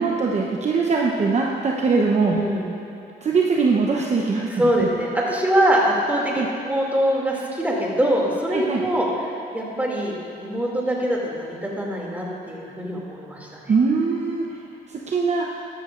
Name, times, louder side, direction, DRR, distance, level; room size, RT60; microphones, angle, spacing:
voice 1, 0.0-2.4 3.2-4.6 6.3-6.5 8.5-8.8 13.7-14.5 14.9-15.5, right 4 dB, 40° right, -1 dB, 0.9 m, -21 dB
voice 2, 2.2-2.7 4.5-13.7, equal, 10° right, -3 dB, 2.6 m, -23 dB
13.0 x 13.0 x 2.5 m, 2.6 s
cardioid pair, 85°, 18 cm